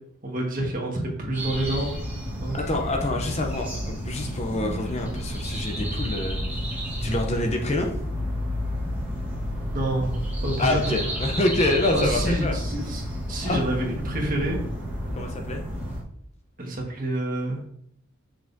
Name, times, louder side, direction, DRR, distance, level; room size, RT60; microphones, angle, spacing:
voice 1, 0.2-2.0 2.4-2.6 9.7-10.9 11.9-13.0 13.3-14.6 16.6-17.6, right 1 dB, 40° right, -1 dB, 1.5 m, -28 dB
sound 1, 1.3-16.0, equal, 10° right, 1.4 m, -30 dB
voice 2, 2.5-6.4 7.0-7.9 10.6-12.5 13.4-13.6 15.2-15.6, left 2 dB, 30° left, 2 dB, 0.6 m, -26 dB
7.2 x 6.0 x 2.7 m, 0.70 s
head